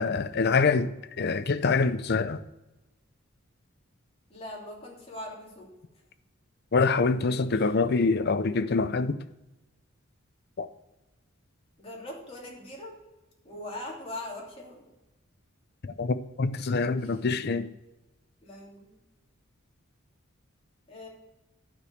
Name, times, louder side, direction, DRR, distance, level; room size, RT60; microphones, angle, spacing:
voice 1, 0.0-2.4 6.7-9.2 10.6-10.7 15.8-17.7, left 4 dB, 50° left, 0.5 m, -25 dB
voice 2, 4.3-5.7 7.5-7.7 11.8-12.9 13.4-14.9 17.0-17.2 18.4-19.0 20.9-21.1, left 1 dB, 30° left, 2.9 m, -41 dB
11.0 x 5.2 x 7.9 m
head